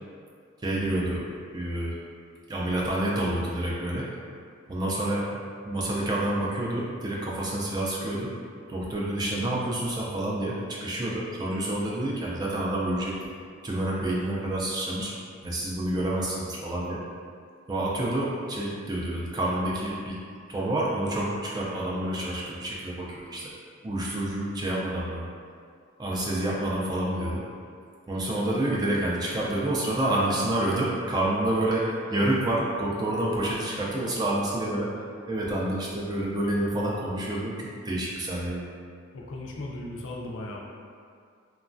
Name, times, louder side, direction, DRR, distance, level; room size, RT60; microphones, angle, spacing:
voice 1, 0.6-1.3 1.5-2.0 2.5-4.1 4.7-5.3 5.6-8.3 8.7-13.3 13.6-15.1 15.4-17.0 17.7-20.2 20.5-23.5 23.8-25.3 26.0-27.4 28.1-34.9 35.3-38.6, right 1 dB, 20° right, -4 dB, 0.3 m, -28 dB
voice 2, 39.1-40.7, left 1 dB, 60° left, -2 dB, 0.4 m, -37 dB
3.0 x 2.2 x 2.5 m, 2.2 s
head